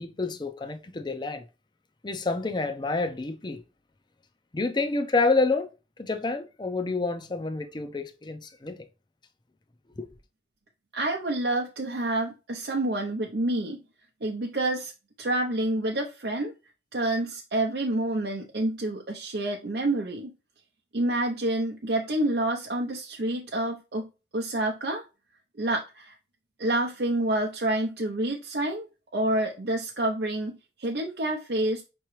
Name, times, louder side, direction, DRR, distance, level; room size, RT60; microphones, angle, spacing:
voice 1, 0.0-1.4 2.0-3.6 4.5-5.7 6.0-8.9 10.0-10.1, left 3 dB, 25° left, 0.5 m, -28 dB
voice 2, 10.9-13.8 14.2-14.9 15.2-16.5 16.9-20.3 20.9-24.1 24.3-25.0 25.6-26.2 26.6-28.9 29.1-31.8, right 1 dB, 65° right, 0.6 m, -28 dB
5.7 x 3.0 x 3.1 m
head